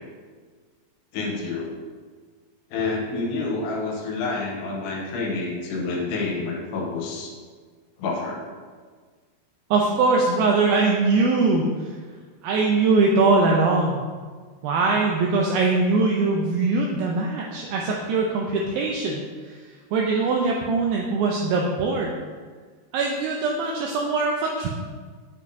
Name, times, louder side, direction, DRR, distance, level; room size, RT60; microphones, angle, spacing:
voice 1, 1.1-1.8 2.7-7.3 8.0-8.5, left 3 dB, 85° left, 0 dB, 2.9 m, -28 dB
voice 2, 9.7-11.9 12.4-14.0 14.6-19.6 19.9-22.2 22.9-24.7, right 3 dB, 85° right, -1 dB, 2.1 m, -22 dB
7.2 x 5.3 x 2.6 m, 1.5 s
omnidirectional pair, 4.7 m